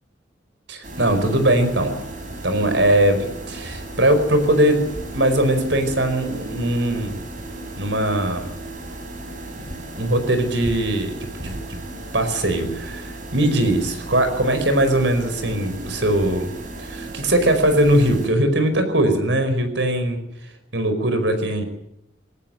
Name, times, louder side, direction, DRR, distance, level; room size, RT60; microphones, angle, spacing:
voice 1, 0.7-2.0 2.4-7.3 7.8-8.5 9.9-11.8 12.1-16.5 16.8-21.6, right 1 dB, 70° right, 8 dB, 5.0 m, -20 dB
sound 1, 0.8-18.3, right 2 dB, 45° right, 6.0 m, -35 dB
21.5 x 18.5 x 7.8 m, 0.85 s
head